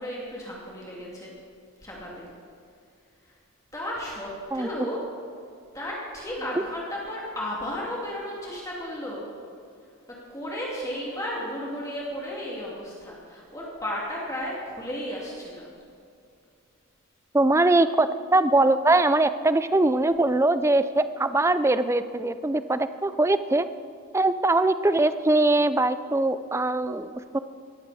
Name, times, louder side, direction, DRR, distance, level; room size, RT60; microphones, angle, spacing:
voice 1, 0.0-1.3 1.8-2.3 3.3-3.4 3.7-5.0 5.7-9.3 10.1-15.7, equal, 15° left, -4 dB, 2.5 m, -34 dB
voice 2, 17.3-23.7 24.1-27.4, right 2 dB, 10° right, 12 dB, 0.4 m, -22 dB
18.5 x 14.5 x 4.2 m, 2.4 s
head